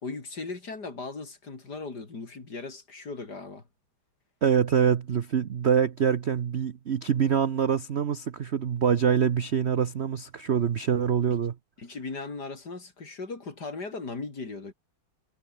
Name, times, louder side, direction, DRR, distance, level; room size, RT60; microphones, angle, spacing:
voice 1, 0.0-3.6 11.8-14.7, left 3 dB, 50° left, 4.2 m, -38 dB
voice 2, 4.4-11.5, right 7 dB, 55° right, 0.7 m, -25 dB
omnidirectional pair, 2.3 m